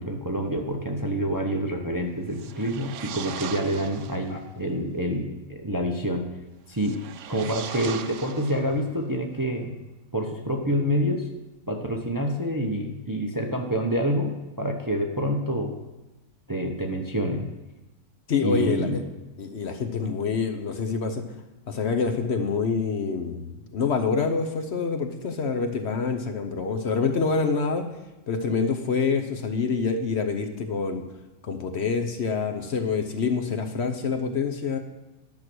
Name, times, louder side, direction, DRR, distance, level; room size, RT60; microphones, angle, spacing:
voice 1, 0.0-6.3 6.7-7.0 7.3-9.7 10.1-11.3 11.7-15.7 16.5-17.5 18.4-19.0, equal, 20° right, 2 dB, 0.7 m, -27 dB
sound 1, 2.3-4.4 6.7-9.1, right 9 dB, 70° right, 0.9 m, -39 dB
voice 2, 18.3-19.0 19.4-21.2 21.7-27.9 28.3-31.0 31.4-34.8, left 5 dB, 55° left, 6 dB, 1.0 m, -26 dB
10.5 x 6.4 x 6.1 m, 1.1 s
omnidirectional pair, 1.4 m